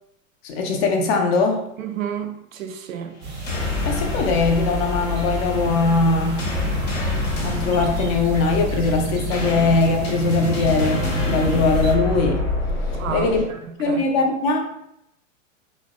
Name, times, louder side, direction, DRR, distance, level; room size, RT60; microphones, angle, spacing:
voice 1, 0.4-1.6 3.8-6.4 7.4-12.4 13.1-13.4 13.8-14.6, left 3 dB, 50° left, 3 dB, 0.6 m, -21 dB
voice 2, 1.8-3.1 12.9-13.3 13.6-14.0, right 8 dB, 90° right, 5 dB, 0.5 m, -30 dB
sound 1, 3.2-11.9, right 3 dB, 30° right, 0.5 m, -32 dB
sound 2, 3.3-13.4, left 3 dB, 70° left, 1.0 m, -26 dB
2.6 x 2.0 x 2.3 m, 0.78 s
hypercardioid pair, 115°, 39 cm